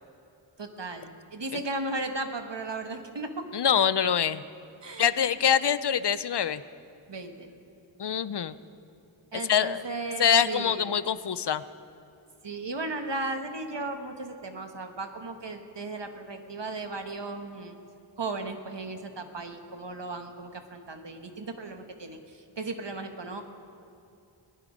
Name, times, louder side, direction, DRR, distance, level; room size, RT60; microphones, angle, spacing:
voice 1, 0.6-3.5 4.8-5.1 7.1-7.5 9.3-11.0 12.4-17.7 18.2-23.4, right 2 dB, 60° right, 6 dB, 1.3 m, -36 dB
voice 2, 3.5-4.4 5.0-6.6 8.0-8.5 9.4-9.8 10.2-11.6, left 8 dB, 55° left, 15 dB, 0.6 m, -24 dB
19.5 x 11.0 x 5.1 m, 2.7 s
wide cardioid pair, 45°, 48 cm